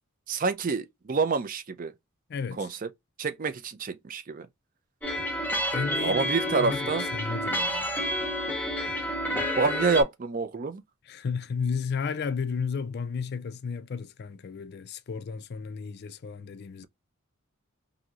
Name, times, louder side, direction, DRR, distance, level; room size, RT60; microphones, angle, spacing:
voice 1, 0.3-1.9 2.6-2.7 3.2-4.5 6.0-7.0 9.6-10.8, right 4 dB, 40° right, 0.5 m, -27 dB
voice 2, 2.3-2.7 5.7-7.9 11.1-16.9, left 5 dB, 50° left, 0.4 m, -33 dB
sound 1, 5.0-10.0, equal, 10° left, 0.7 m, -29 dB
3.0 x 2.6 x 2.4 m
head